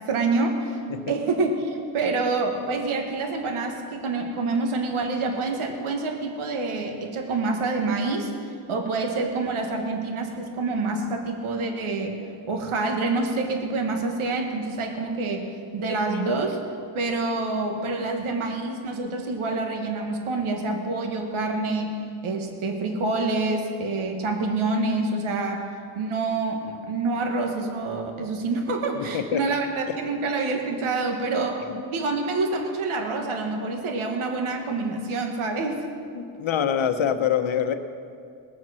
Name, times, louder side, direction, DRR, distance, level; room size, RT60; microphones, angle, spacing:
voice 1, 0.1-0.8 1.1-8.3 8.7-12.2 12.5-16.6 16.9-22.0 22.2-25.7 25.9-31.6 31.9-35.8, right 3 dB, 75° right, 3 dB, 1.6 m, -27 dB
voice 2, 29.0-29.4 31.6-31.8 36.1-37.7, left 8 dB, 65° left, 9 dB, 1.0 m, -25 dB
20.5 x 7.5 x 6.3 m, 2.4 s
wide cardioid pair, 125°, 50 cm